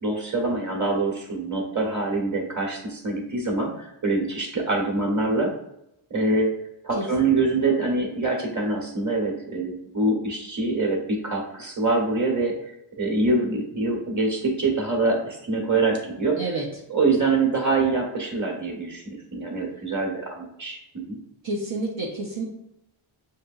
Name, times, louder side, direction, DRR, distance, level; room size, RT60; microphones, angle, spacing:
voice 1, 0.0-5.5 6.1-6.5 6.8-12.5 13.0-16.4 16.9-21.2, right 3 dB, 35° right, -1 dB, 1.5 m, -25 dB
voice 2, 21.4-22.4, right 2 dB, 60° right, -4 dB, 0.9 m, -29 dB
6.4 x 2.8 x 2.6 m, 0.81 s
cardioid pair, 45°, 50 cm